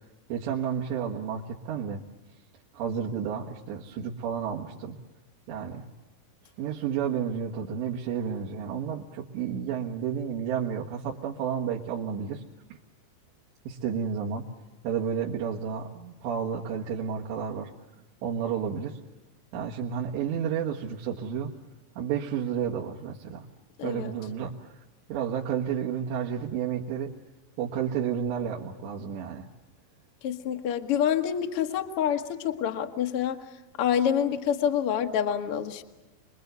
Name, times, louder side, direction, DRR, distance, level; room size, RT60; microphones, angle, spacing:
voice 1, 0.3-2.0 2.7-5.0 5.5-5.9 6.6-12.4 13.7-14.5 14.8-17.7 18.2-19.0 19.5-21.5 22.0-23.5 23.8-24.7 25.1-27.1 27.6-29.5, right 8 dB, 90° right, -3 dB, 3.8 m, -31 dB
voice 2, 23.8-24.1 30.2-33.4 33.8-35.8, left 9 dB, 65° left, 4 dB, 1.4 m, -27 dB
28.5 x 21.5 x 8.1 m, 1.1 s
omnidirectional pair, 4.9 m